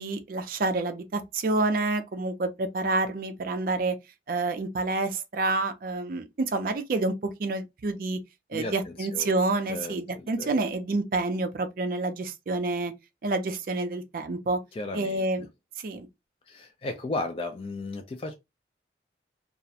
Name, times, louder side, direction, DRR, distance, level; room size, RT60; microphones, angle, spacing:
voice 1, 0.0-4.0 4.3-8.2 8.5-12.9 13.2-14.6 14.9-15.5 15.8-16.1, right 2 dB, 50° right, 0.4 m, -28 dB
voice 2, 8.5-9.3 9.7-10.0 10.4-10.6 14.7-15.3 16.5-18.3, left 2 dB, 30° left, 0.3 m, -34 dB
2.3 x 2.1 x 2.7 m
head